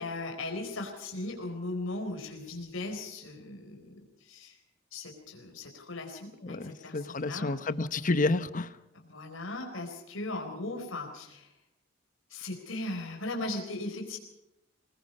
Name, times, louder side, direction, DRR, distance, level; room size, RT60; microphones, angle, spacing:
voice 1, 0.0-4.6 4.9-7.6 8.9-11.5 12.3-14.2, left 2 dB, 85° left, 2 dB, 4.2 m, -38 dB
voice 2, 6.4-8.7, left 2 dB, 40° left, 13 dB, 1.0 m, -30 dB
24.5 x 20.0 x 5.5 m, 0.88 s
head